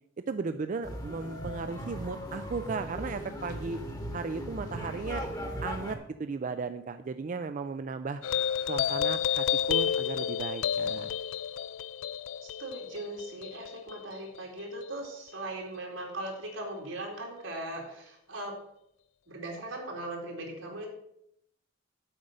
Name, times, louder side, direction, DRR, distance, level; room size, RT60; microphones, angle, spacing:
voice 1, 0.3-3.8 4.1-5.3 5.6-8.2 8.7-11.1, right 4 dB, 40° right, 9 dB, 0.3 m, -35 dB
sound 1, 0.8-6.0, equal, 20° left, 1.2 m, -38 dB
sound 2, 8.2-15.1, left 9 dB, 75° left, 0.4 m, -31 dB
voice 2, 12.4-18.6 19.3-20.9, right 1 dB, 85° right, 0 dB, 2.6 m, -39 dB
7.9 x 5.2 x 7.4 m, 0.77 s
head